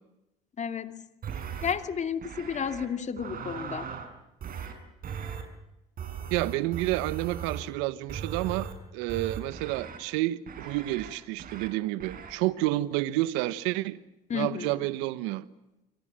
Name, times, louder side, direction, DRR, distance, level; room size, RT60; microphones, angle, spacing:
voice 1, 0.6-1.0 1.6-3.9 14.3-14.7, left 7 dB, 35° left, 8 dB, 2.6 m, -32 dB
sound 1, 1.2-1.7 2.2-2.9 3.2-4.1 4.4-4.7 5.0-5.4 6.0-7.7 8.1-8.7 9.1-10.0 10.5-11.1 11.4-11.7 12.0-12.3, right 7 dB, 45° right, 7.0 m, -38 dB
voice 2, 6.3-14.0 14.3-15.4, right 17 dB, 80° right, 15 dB, 1.2 m, -30 dB
28.5 x 24.0 x 7.6 m, 0.94 s
supercardioid pair, 80°, 20 cm